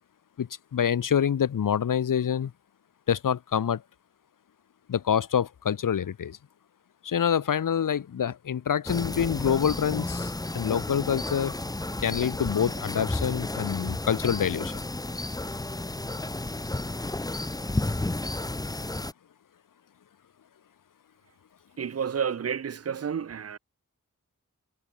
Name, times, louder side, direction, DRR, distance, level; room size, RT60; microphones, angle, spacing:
voice 1, 0.4-2.5 3.1-3.8 4.9-6.4 7.0-11.6 12.0-14.8, left 8 dB, 85° left, 0.7 m, -26 dB
sound 1, 8.9-19.1, left 2 dB, 10° left, 0.6 m, -32 dB
voice 2, 21.8-23.6, right 7 dB, 50° right, 0.6 m, -30 dB
wide cardioid pair, 75°, 32 cm